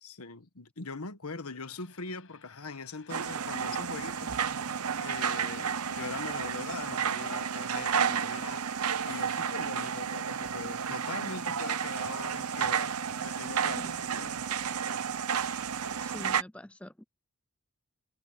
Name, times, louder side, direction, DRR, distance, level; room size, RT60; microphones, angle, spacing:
voice 1, 0.0-4.3 5.0-14.5, left 4 dB, 85° left, 1.5 m, -42 dB
sound 1, 1.6-16.3, left 2 dB, 65° left, 5.9 m, -58 dB
sound 2, 3.1-16.4, right 7 dB, 90° right, 0.8 m, -32 dB
voice 2, 16.0-17.0, left 1 dB, 5° left, 0.4 m, -44 dB
head